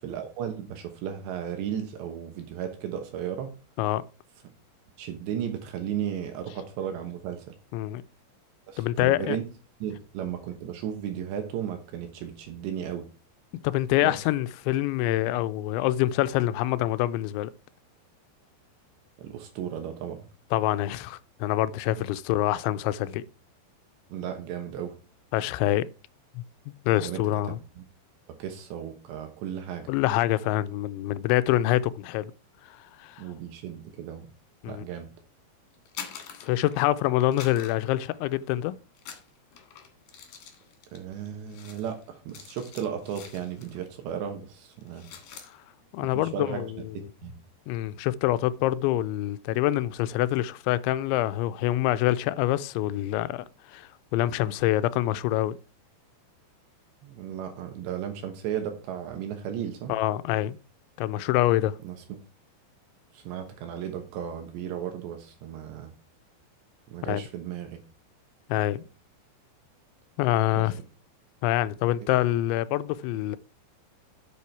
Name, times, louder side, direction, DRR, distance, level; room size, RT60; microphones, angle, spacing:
voice 1, 0.0-3.5 5.0-7.5 8.7-9.4 9.8-13.1 14.0-14.2 19.2-20.3 21.9-22.0 24.1-24.9 26.9-27.2 27.8-27.9 28.3-29.9 33.2-34.3 34.7-35.1 40.9-45.1 46.0-46.7 46.9-47.4 57.0-59.9 61.8-62.2 63.1-65.9 66.9-67.8 70.5-70.7, right 9 dB, 75° right, 3.2 m, -35 dB
voice 2, 8.8-9.4 13.6-17.5 20.5-23.2 25.3-25.9 26.4-26.5 26.9-27.6 29.9-32.3 32.7-33.2 34.6-34.8 36.4-38.7 45.9-47.0 47.7-55.6 59.9-60.6 61.0-61.7 67.0-67.2 68.5-68.8 70.2-70.7 71.4-73.4, left 15 dB, 85° left, 2.9 m, -26 dB
sound 1, 35.7-37.0 37.3-38.6 38.9-43.9 44.2-44.4 44.7-45.5, left 7 dB, 60° left, 2.8 m, -45 dB
8.5 x 6.8 x 4.6 m
omnidirectional pair, 5.2 m